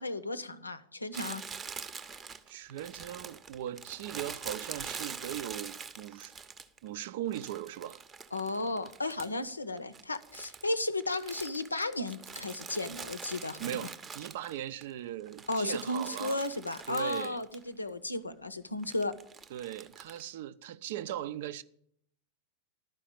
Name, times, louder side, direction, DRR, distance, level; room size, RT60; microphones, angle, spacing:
voice 1, 0.0-1.4 8.3-13.8 15.5-19.1, left 2 dB, 80° left, 0.6 m, -34 dB
Crumpling crinkling, 1.1-6.9 7.3-9.5 9.8-14.8 15.2-17.6 17.9-18.0 18.8-20.2, right 5 dB, 20° right, 0.7 m, -44 dB
voice 2, 2.5-6.3 6.8-8.0 13.6-16.4 16.9-17.4 19.5-21.6, right 12 dB, 55° right, 0.5 m, -39 dB
12.0 x 4.9 x 8.4 m
figure-of-eight pair, 90°, 0 cm